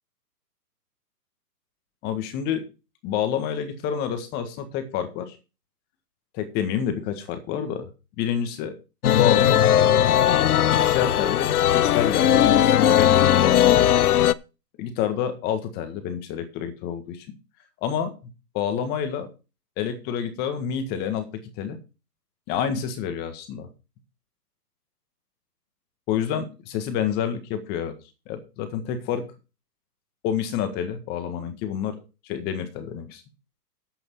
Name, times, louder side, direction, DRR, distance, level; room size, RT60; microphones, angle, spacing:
voice 1, 2.0-2.6 3.0-5.4 6.3-7.9 8.2-8.7 9.1-9.6 10.8-13.9 14.8-17.3 17.8-18.1 18.5-19.3 19.8-21.3 21.6-21.8 22.5-23.7 26.1-27.9 28.3-29.2 30.2-32.0 32.2-33.2, left 8 dB, 20° left, 9 dB, 1.6 m, -28 dB
sound 1, 9.0-14.3, left 10 dB, 65° left, 0.8 m, -18 dB
11.0 x 8.3 x 4.7 m, 0.31 s
hypercardioid pair, 150°, 49 cm